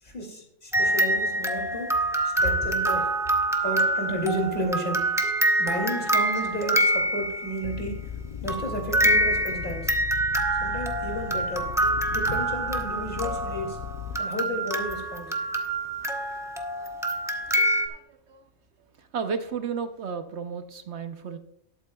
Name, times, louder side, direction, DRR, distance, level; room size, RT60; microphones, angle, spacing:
voice 1, 0.0-2.0 2.4-3.1 3.6-5.0 5.6-7.9 8.4-9.9 10.6-11.7 12.1-13.8 14.1-15.3, equal, 40° left, 1 dB, 2.7 m, -32 dB
sound 1, 0.7-7.7 8.5-17.9, right 1 dB, 5° right, 0.8 m, -26 dB
sound 2, 7.6-14.2, left 8 dB, 60° left, 0.4 m, -37 dB
voice 2, 17.9-18.5 19.0-21.4, right 6 dB, 60° right, 8 dB, 1.0 m, -34 dB
19.0 x 8.4 x 2.3 m, 0.75 s
omnidirectional pair, 1.3 m